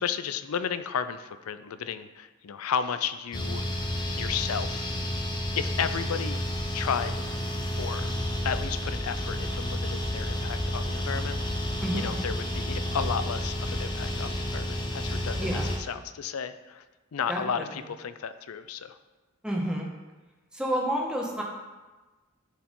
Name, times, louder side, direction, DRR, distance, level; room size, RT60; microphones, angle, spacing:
voice 1, 0.0-3.6 4.2-4.9 5.5-6.4 6.7-7.1 7.7-8.1 8.4-11.6 11.9-16.8 17.1-19.0, left 7 dB, 85° left, 12 dB, 0.5 m, -33 dB
sound 1, 3.3-15.8, left 1 dB, 20° left, 0.8 m, -31 dB
voice 2, 11.8-12.1 15.4-15.6 17.3-17.4 19.4-19.9 20.5-21.4, equal, 5° right, -2 dB, 1.3 m, -29 dB
11.0 x 4.7 x 3.7 m, 1.2 s
head